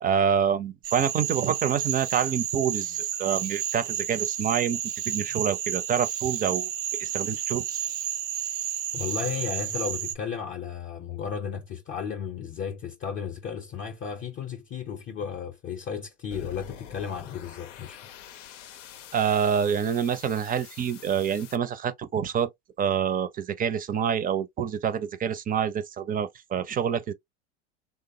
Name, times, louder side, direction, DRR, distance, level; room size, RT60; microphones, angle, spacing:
voice 1, 0.0-4.8 5.0-6.7 7.0-7.8 19.1-22.5 22.8-27.1, right 8 dB, 25° right, 0.5 m, -27 dB
Cricket / Frog, 0.8-10.1, right 10 dB, 75° right, 0.7 m, -31 dB
voice 2, 8.9-18.0, left 7 dB, 35° left, 0.6 m, -34 dB
sound 1, 16.3-21.6, left 8 dB, 85° left, 0.6 m, -46 dB
3.3 x 2.0 x 2.6 m
hypercardioid pair, 85°, 36 cm